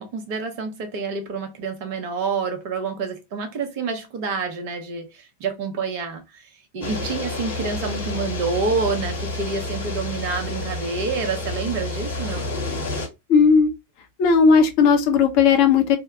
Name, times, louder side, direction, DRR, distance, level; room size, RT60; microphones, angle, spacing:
voice 1, 0.0-6.4 6.7-12.5, right 4 dB, 45° right, 0.8 m, -28 dB
sound 1, 6.8-13.1, left 2 dB, 70° left, 1.4 m, -29 dB
voice 2, 13.3-13.7 14.2-16.0, left 5 dB, 45° left, 0.8 m, -16 dB
2.7 x 2.2 x 3.4 m
figure-of-eight pair, 90°, 0 cm